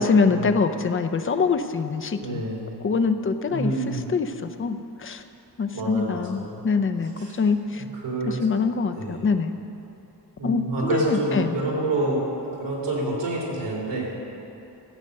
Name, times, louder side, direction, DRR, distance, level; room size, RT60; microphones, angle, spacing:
voice 1, 0.0-2.4 2.8-5.2 5.6-7.1 7.4-7.8 8.3-9.5 10.4-10.6 10.9-11.6, left 5 dB, 30° left, 8 dB, 0.6 m, -24 dB
voice 2, 2.2-2.7 3.5-4.1 5.7-6.6 7.2-7.4 7.9-8.4 8.9-9.2 10.4-12.2 12.6-14.1, right 2 dB, 90° right, -3 dB, 3.2 m, -27 dB
14.5 x 8.1 x 6.6 m, 2.9 s
wide cardioid pair, 140°, 42 cm